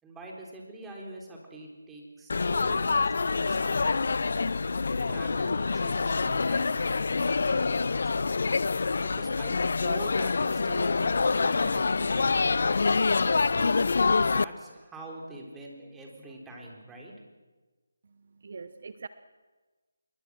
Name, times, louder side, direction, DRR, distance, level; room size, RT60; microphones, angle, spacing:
voice 1, 0.0-4.5 5.0-8.4 9.0-17.1, right 1 dB, 5° right, -1 dB, 3.8 m, -45 dB
Laughter / Chatter / Crowd, 2.3-14.4, left 4 dB, 60° left, 0.6 m, -26 dB
voice 2, 18.0-19.1, right 4 dB, 50° right, 12 dB, 0.9 m, -43 dB
27.0 x 22.0 x 6.3 m, 1.3 s
figure-of-eight pair, 160°, 0 cm